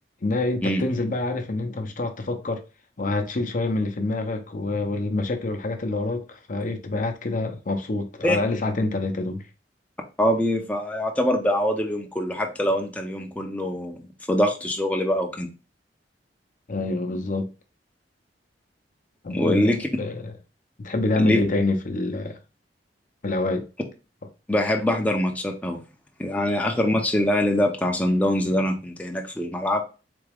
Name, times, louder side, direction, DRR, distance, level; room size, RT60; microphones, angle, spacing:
voice 1, 0.2-2.6 3.0-9.4 16.7-17.5 19.2-19.7 20.0-20.3 20.8-22.4 23.2-23.7, left 2 dB, 45° left, 0.6 m, -26 dB
voice 2, 10.2-14.0 14.3-15.5 19.3-19.8 21.2-21.4 24.5-25.8 26.2-29.8, left 1 dB, 10° left, 0.5 m, -23 dB
4.0 x 3.4 x 3.4 m
head